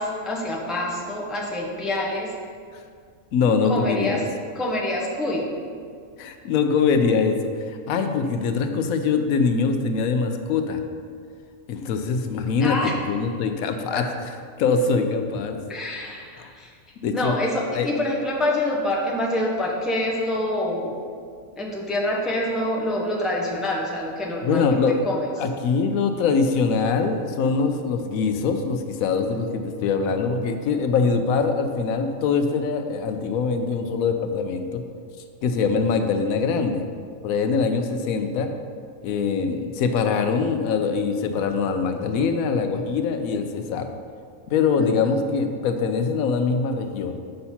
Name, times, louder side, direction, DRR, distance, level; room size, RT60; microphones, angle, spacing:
voice 1, 0.0-2.3 3.6-4.2 4.5-5.5 12.6-12.9 13.9-14.0 15.7-16.7 17.1-20.9 21.6-24.8 25.0-25.3 44.8-45.1, left 1 dB, ahead, -3 dB, 0.7 m, -26 dB
voice 2, 3.3-4.2 6.2-10.8 11.7-14.0 14.6-15.6 16.4-16.5 17.0-17.4 17.7-17.9 24.4-25.0 25.4-34.8 35.4-36.8 37.2-38.5 39.0-43.9 44.5-47.2, left 5 dB, 85° left, 7 dB, 1.0 m, -23 dB
6.6 x 5.6 x 4.2 m, 2.1 s
omnidirectional pair, 1.4 m